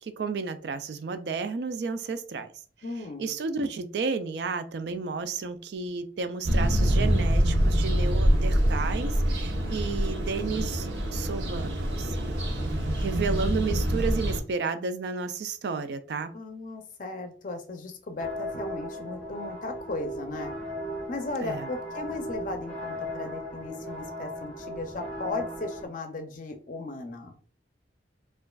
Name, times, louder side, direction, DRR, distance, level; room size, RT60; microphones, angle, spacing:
voice 1, 0.0-2.5 3.2-12.2 13.0-16.3 21.4-21.6, right 4 dB, 70° right, 0.4 m, -32 dB
voice 2, 2.8-3.3 16.3-20.5 21.1-27.4, left 2 dB, 50° left, 0.5 m, -36 dB
sound 1, 6.4-14.4, equal, 90° right, 0.8 m, -25 dB
sound 2, 18.2-25.9, equal, 5° left, 0.9 m, -37 dB
4.5 x 2.4 x 2.3 m
head